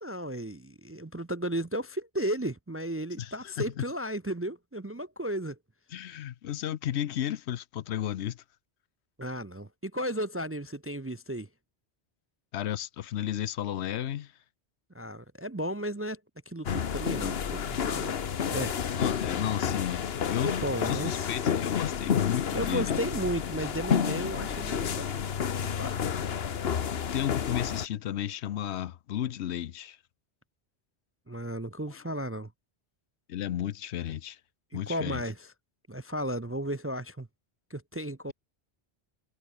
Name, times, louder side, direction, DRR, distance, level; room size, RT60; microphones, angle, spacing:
voice 1, 0.0-5.6 9.2-11.5 14.9-16.2 16.5-18.1 18.5-18.7 20.4-21.3 22.5-25.2 25.5-26.1 31.3-32.5 34.7-35.5 35.9-37.3 37.7-38.3, right 1 dB, 20° right, 0.4 m, -34 dB
voice 2, 3.2-3.8 5.9-8.4 12.5-14.3 19.0-23.0 27.1-30.0 31.9-32.0 33.3-34.4 34.7-35.2, left 11 dB, 80° left, 1.0 m, -33 dB
sound 1, 16.7-27.9, left 7 dB, 65° left, 1.2 m, -30 dB
omnidirectional pair, 1.1 m